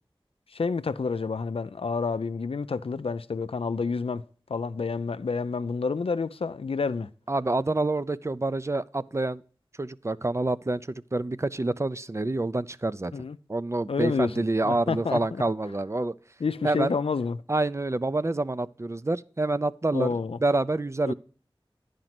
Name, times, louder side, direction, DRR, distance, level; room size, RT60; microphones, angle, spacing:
voice 1, 0.5-4.2 4.5-7.1 13.1-13.4 13.9-15.4 16.4-17.4 19.9-20.4 21.1-21.2, left 4 dB, 85° left, 0.4 m, -29 dB
voice 2, 7.3-9.4 9.8-13.1 13.5-16.1 16.6-16.9 17.5-20.1 20.4-21.1, right 2 dB, 30° right, 0.4 m, -27 dB
11.0 x 5.1 x 5.9 m
wide cardioid pair, 55°, 9 cm